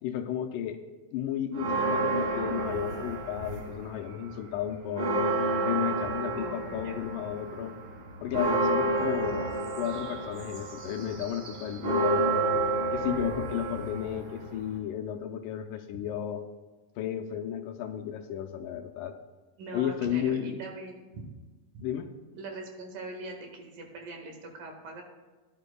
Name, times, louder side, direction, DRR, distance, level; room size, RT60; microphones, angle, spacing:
voice 1, 0.0-0.8 1.1-5.3 5.6-7.7 8.2-12.6 12.9-16.4 17.0-19.2 19.7-20.6 21.8-22.1, left 10 dB, 80° left, 4 dB, 2.1 m, -33 dB
sound 1, 1.5-3.9 4.3-14.8, right 2 dB, 45° right, 2.4 m, -30 dB
voice 2, 6.4-7.1 19.6-21.2 21.7-21.8 22.3-25.0, right 2 dB, 80° right, 2 dB, 3.3 m, -42 dB
17.0 x 10.5 x 2.3 m, 1.2 s
omnidirectional pair, 3.9 m